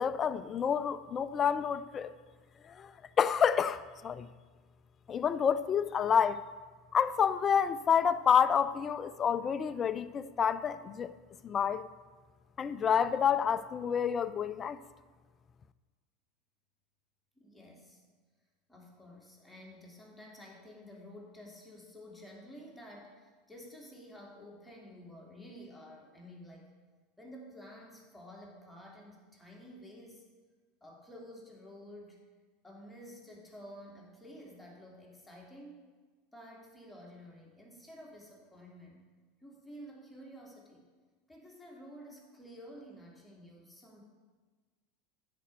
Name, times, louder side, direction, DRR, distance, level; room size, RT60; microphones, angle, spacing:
voice 1, 0.0-2.1 2.6-2.9 3.2-4.3 5.1-6.4 6.9-11.1 11.4-11.9 12.6-14.8, left 7 dB, 30° left, 14 dB, 0.5 m, -29 dB
voice 2, 17.4-18.0 18.7-26.7 27.2-30.2 30.8-32.2 32.6-35.8 36.3-39.0 39.4-40.8 41.3-44.0, equal, 5° left, -2 dB, 2.5 m, -51 dB
10.0 x 5.2 x 7.7 m, 1.4 s
hypercardioid pair, 85°, 0 cm